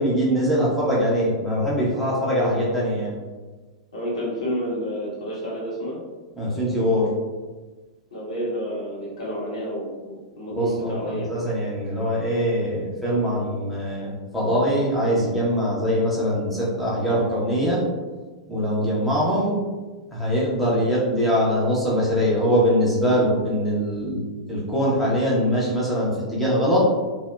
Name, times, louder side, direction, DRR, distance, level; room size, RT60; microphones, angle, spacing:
voice 1, 0.0-3.1 6.4-7.1 10.5-17.8 18.5-19.6 20.1-26.9, equal, ahead, -8 dB, 0.8 m, -22 dB
voice 2, 3.9-6.0 8.1-11.4, equal, 70° left, -7 dB, 1.0 m, -30 dB
2.8 x 2.1 x 2.2 m, 1.3 s
figure-of-eight pair, 95°, 3 cm